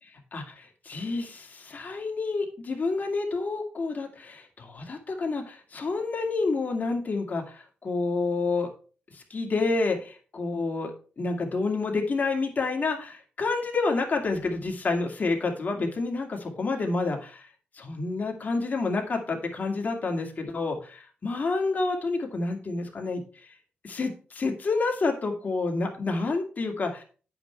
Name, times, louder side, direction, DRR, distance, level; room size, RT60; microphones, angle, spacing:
voice 1, 0.0-8.7 9.1-17.5 17.7-23.5 23.8-27.0, left 3 dB, 45° left, 2 dB, 2.3 m, -29 dB
8.5 x 6.0 x 4.5 m, 0.38 s
cardioid pair, 65°, 4 cm